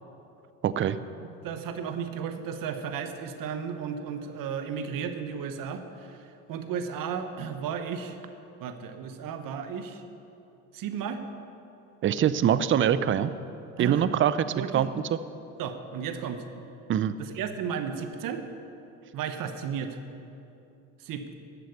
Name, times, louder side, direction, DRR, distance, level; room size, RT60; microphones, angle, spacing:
voice 1, 0.6-1.0 12.0-13.3 13.8-14.9 16.9-17.2, right 9 dB, 30° right, 14 dB, 0.5 m, -24 dB
voice 2, 1.4-6.2 6.5-8.2 8.6-10.0 10.7-11.2 13.8-14.1 14.5-14.9 15.6-16.4 17.2-18.4 19.1-20.0 21.0-21.3, right 7 dB, 50° right, 8 dB, 1.2 m, -34 dB
12.0 x 7.6 x 6.9 m, 2.8 s
hypercardioid pair, 85°, 43 cm